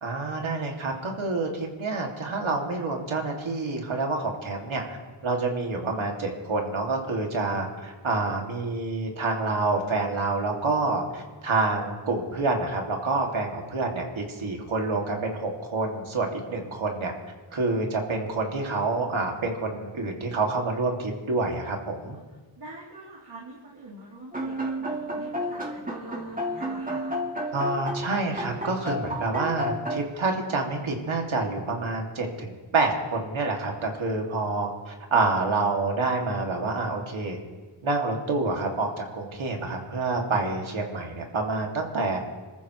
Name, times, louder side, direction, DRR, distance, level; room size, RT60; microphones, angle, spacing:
voice 1, 0.0-5.0 5.2-17.1 17.5-22.2 27.5-37.4 37.8-42.2, right 3 dB, 85° right, 1 dB, 2.4 m, -28 dB
voice 2, 22.6-27.2, right 2 dB, 60° right, -8 dB, 3.7 m, -45 dB
sound 1, 24.3-30.0, equal, 15° right, 2.4 m, -31 dB
27.5 x 14.0 x 3.2 m, 1.3 s
wide cardioid pair, 95°, 47 cm